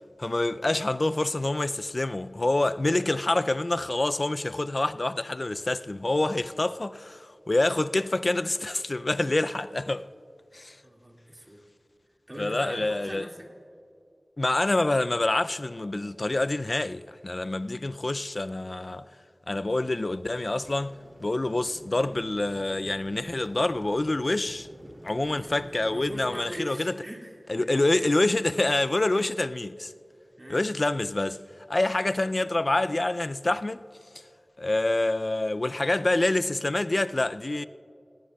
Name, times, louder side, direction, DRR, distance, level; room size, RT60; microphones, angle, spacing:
voice 1, 0.2-10.1 10.5-10.8 12.4-13.3 14.4-19.1 19.5-20.9 21.2-24.7 25.0-27.0 27.5-29.9 30.5-31.4 31.7-33.8 34.6-37.6, left 2 dB, 45° left, 0.4 m, -26 dB
voice 2, 10.8-11.6 12.3-13.5 25.3-27.3 27.6-27.7 30.4-30.6, right 1 dB, 25° right, 2.1 m, -41 dB
sound 1, 20.4-26.3, right 1 dB, 40° right, 2.8 m, -49 dB
28.5 x 18.5 x 2.3 m
wide cardioid pair, 70°, 0 cm